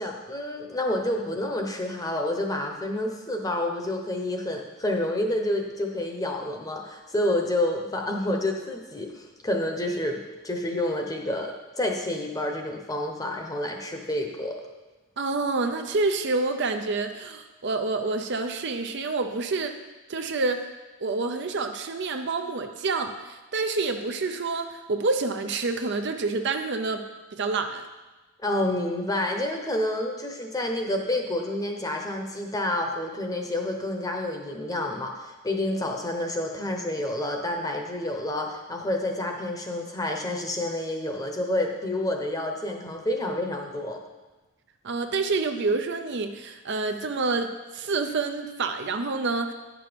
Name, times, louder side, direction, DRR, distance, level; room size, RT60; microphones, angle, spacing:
voice 1, 0.0-14.6 28.4-44.0, left 1 dB, 15° left, 2 dB, 0.9 m, -29 dB
voice 2, 15.2-19.7 20.1-20.6 21.0-27.0 27.4-27.8 44.8-49.5, right 3 dB, 50° right, 6 dB, 0.6 m, -28 dB
10.0 x 6.1 x 5.1 m, 1.1 s
head